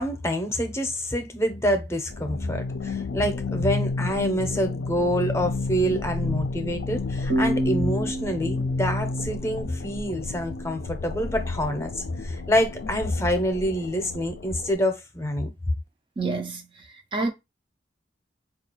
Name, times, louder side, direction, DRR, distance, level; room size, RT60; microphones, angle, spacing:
voice 1, 0.0-15.5, equal, 15° left, 0.6 m, -27 dB
sound 1, 2.1-14.7, left 3 dB, 75° left, 0.4 m, -31 dB
sound 2, 7.3-10.7, equal, 75° right, 0.8 m, -30 dB
voice 2, 16.2-17.3, right 3 dB, 30° right, 0.3 m, -29 dB
4.6 x 2.4 x 2.9 m
head